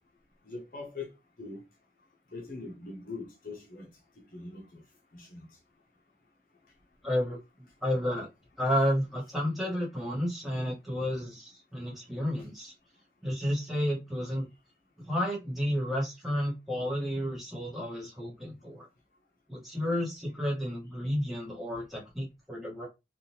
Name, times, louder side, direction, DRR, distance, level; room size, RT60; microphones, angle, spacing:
voice 1, 0.4-1.7 2.3-4.8 5.1-5.6 6.6-6.7, left 3 dB, 50° left, 0.8 m, -43 dB
voice 2, 7.0-7.4 7.8-8.3 8.6-12.7 13.2-14.4 15.0-18.9 19.5-22.9, equal, ahead, 1.2 m, -31 dB
3.6 x 2.4 x 2.8 m
head